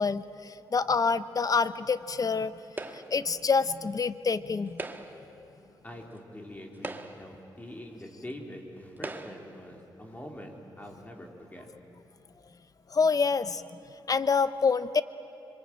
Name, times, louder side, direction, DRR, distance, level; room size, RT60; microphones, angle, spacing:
voice 1, 0.0-2.5 2.9-4.8 12.9-13.6 14.1-15.0, left 5 dB, 40° left, 14 dB, 0.9 m, -27 dB
sound 1, 2.8-3.3 4.7-5.3 6.2-6.3 6.7-7.4 8.3-8.4 9.0-9.6, right 2 dB, 20° right, 1.6 m, -40 dB
voice 2, 5.8-11.7, left 1 dB, 20° left, 1 dB, 3.9 m, -44 dB
25.5 x 23.0 x 8.9 m, 2.9 s
cardioid pair, 75°, 9 cm